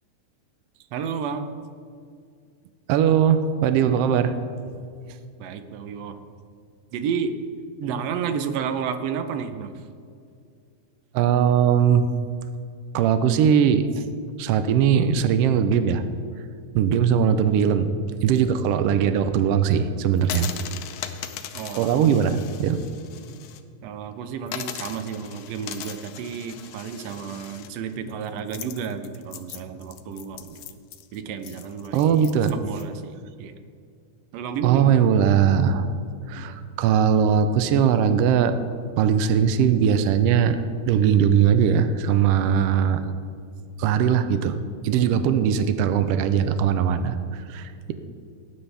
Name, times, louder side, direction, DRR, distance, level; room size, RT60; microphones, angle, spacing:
voice 1, 0.9-1.5 5.4-6.2 6.9-7.3 7.8-9.8 21.5-22.1 23.8-30.8 31.1-33.5 34.3-35.0 36.4-36.6, right 7 dB, 70° right, 9 dB, 1.7 m, -31 dB
voice 2, 2.9-4.3 11.1-12.1 12.9-14.0 14.4-16.0 16.7-17.9 18.2-20.5 21.7-22.8 31.9-32.5 34.6-35.9 36.3-38.6 39.0-40.6 40.9-43.0 43.8-44.6 44.8-47.9, right 8 dB, 85° right, 10 dB, 1.3 m, -20 dB
sound 1, 20.2-23.6 23.9-24.0 24.5-32.8, left 10 dB, 75° left, 1.7 m, -39 dB
18.0 x 9.7 x 3.4 m, 2.2 s
omnidirectional pair, 3.4 m